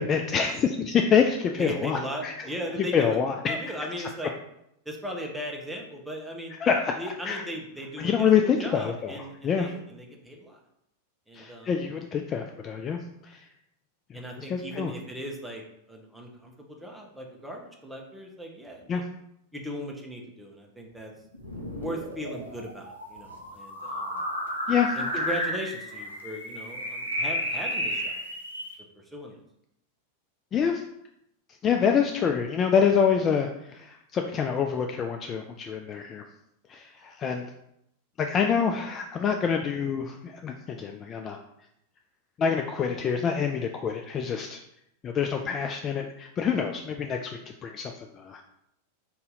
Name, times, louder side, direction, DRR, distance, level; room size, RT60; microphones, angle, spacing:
voice 1, 0.0-2.3 2.8-3.6 6.6-7.0 7.2-7.4 8.0-9.7 11.3-13.4 14.1-14.2 14.5-14.9 18.9-19.0 24.7-25.0 30.5-30.8 31.6-36.2 36.7-37.5 38.2-41.4 42.4-44.6 45.0-48.4, left 7 dB, 25° left, 4 dB, 0.3 m, -26 dB
voice 2, 1.6-3.2 3.5-4.3 4.9-6.5 7.0-10.6 11.3-11.8 14.1-15.6 15.9-19.0 19.5-21.1 21.8-24.2 24.9-28.2 29.0-29.4, equal, 5° right, 0 dB, 0.8 m, -38 dB
sound 1, 21.3-28.7, equal, 90° left, 0.9 m, -32 dB
4.1 x 2.7 x 3.7 m, 0.79 s
figure-of-eight pair, 90°, 0 cm